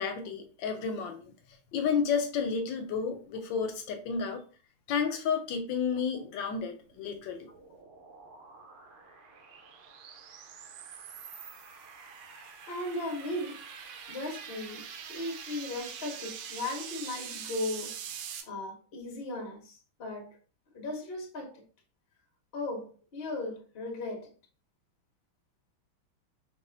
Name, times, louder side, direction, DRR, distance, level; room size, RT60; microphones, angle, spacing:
voice 1, 0.0-1.3 1.7-4.4 4.9-7.5, left 6 dB, 75° left, 1.1 m, -31 dB
sound 1, 6.7-18.4, right 7 dB, 85° right, 1.5 m, -45 dB
voice 2, 12.7-13.6 14.1-17.9 18.5-20.4 20.7-21.6 22.5-24.3, left 2 dB, 60° left, 0.6 m, -37 dB
4.7 x 2.4 x 2.5 m
omnidirectional pair, 2.3 m